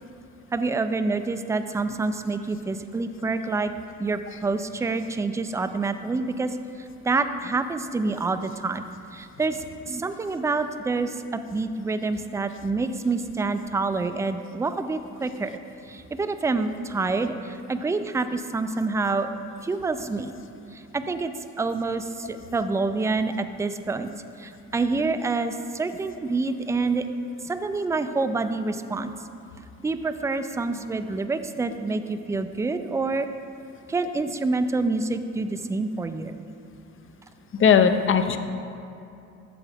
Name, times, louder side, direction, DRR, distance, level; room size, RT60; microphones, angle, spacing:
voice 1, 0.5-3.7 4.0-8.8 9.1-15.5 15.8-19.3 19.6-20.3 20.7-24.1 24.4-27.1 27.4-29.1 29.8-33.3 33.9-36.4, right 3 dB, 10° right, 9 dB, 0.3 m, -27 dB
voice 2, 37.6-38.4, left 7 dB, 45° left, 9 dB, 0.5 m, -18 dB
8.3 x 7.0 x 3.5 m, 2.7 s
cardioid pair, 90°, 30 cm